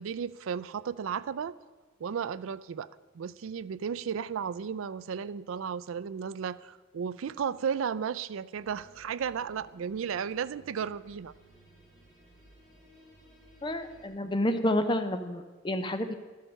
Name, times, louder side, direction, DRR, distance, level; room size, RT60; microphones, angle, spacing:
voice 1, 0.0-1.6 2.0-2.9 3.1-11.3, right 7 dB, 75° right, 17 dB, 0.4 m, -34 dB
sound 1, 8.5-14.1, right 1 dB, ahead, 4.1 m, -57 dB
voice 2, 13.6-16.1, left 1 dB, 20° left, 9 dB, 0.5 m, -29 dB
12.0 x 8.5 x 5.5 m, 1.3 s
head